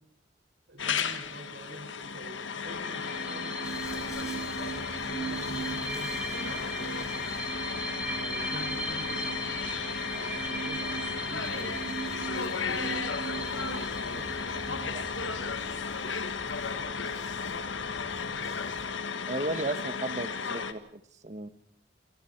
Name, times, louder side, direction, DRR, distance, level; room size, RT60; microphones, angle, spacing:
voice 1, 0.7-7.2 8.0-11.9 12.6-17.4, right 1 dB, 65° right, 3 dB, 5.9 m, -47 dB
sound 1, 0.8-20.7, left 5 dB, 80° left, 1.8 m, -34 dB
sound 2, 2.7-16.0, right 3 dB, 5° right, 4.7 m, -38 dB
Dog, 3.6-18.9, equal, 15° left, 5.9 m, -48 dB
voice 2, 19.3-21.5, right 2 dB, 40° right, 12 dB, 1.3 m, -35 dB
29.0 x 24.5 x 4.6 m, 0.74 s
head